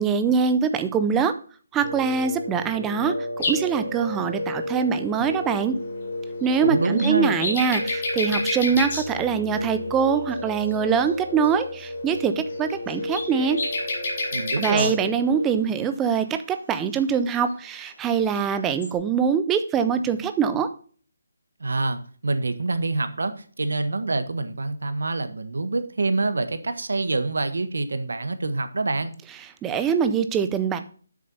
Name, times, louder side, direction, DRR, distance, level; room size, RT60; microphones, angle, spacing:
voice 1, 0.0-1.3 1.7-5.8 6.4-13.6 14.6-20.7 29.6-30.8, right 6 dB, 5° right, 9 dB, 0.4 m, -23 dB
Piano, 1.8-15.5, left 1 dB, 50° left, 2.8 m, -33 dB
sound 1, 3.4-3.6 6.4-6.6 6.9-9.0 11.1-11.2 11.4-11.6 11.8-11.9 12.5-14.9 18.4-18.5 18.6-18.9, left 2 dB, 30° left, 2.9 m, -29 dB
voice 2, 6.6-7.3 14.3-15.0 21.6-29.1, right 3 dB, 80° right, 10 dB, 1.4 m, -26 dB
7.9 x 6.6 x 5.4 m, 0.43 s
hypercardioid pair, 175°, 0 cm